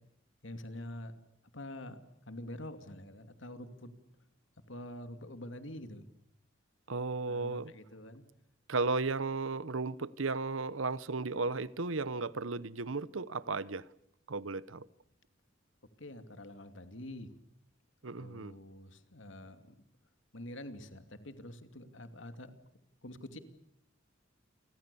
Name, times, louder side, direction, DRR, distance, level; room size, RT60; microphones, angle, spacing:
voice 1, 0.4-1.1 1.5-3.9 4.7-6.0 7.3-8.2 16.0-17.3 18.0-19.8 20.3-22.5 23.0-23.4, left 1 dB, 75° left, 2.6 m, -46 dB
voice 2, 6.9-7.7 8.7-13.9 14.3-14.9 18.0-18.5, right 3 dB, 85° right, 1.0 m, -35 dB
29.5 x 24.5 x 7.0 m
head